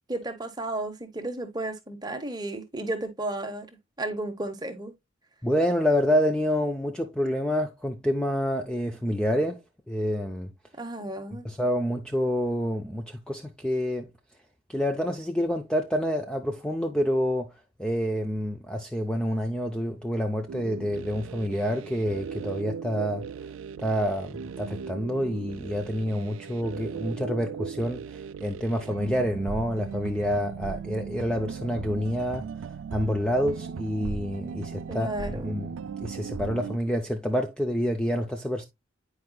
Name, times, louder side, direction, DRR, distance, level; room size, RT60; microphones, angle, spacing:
voice 1, 0.1-3.7 4.0-4.9 10.8-11.4 34.9-35.5, right 2 dB, 20° right, 0.9 m, -33 dB
voice 2, 5.4-9.6 9.9-10.5 11.4-14.1 14.7-17.5 17.8-23.2 23.8-32.5 32.9-35.1 35.4-35.7 36.0-38.6, equal, 5° left, 0.5 m, -28 dB
sound 1, 20.5-36.8, right 6 dB, 80° right, 0.3 m, -37 dB
9.3 x 4.8 x 2.2 m
head